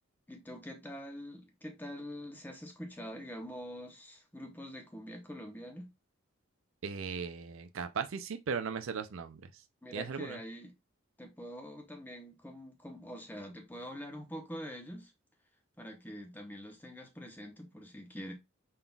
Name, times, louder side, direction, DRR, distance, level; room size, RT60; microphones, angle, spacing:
voice 1, 0.3-5.9 9.8-10.7 11.2-15.1 15.8-18.3, equal, 10° left, 0.9 m, -45 dB
voice 2, 6.8-9.6 9.9-10.4, right 6 dB, 65° right, 0.5 m, -37 dB
5.4 x 3.8 x 2.3 m
head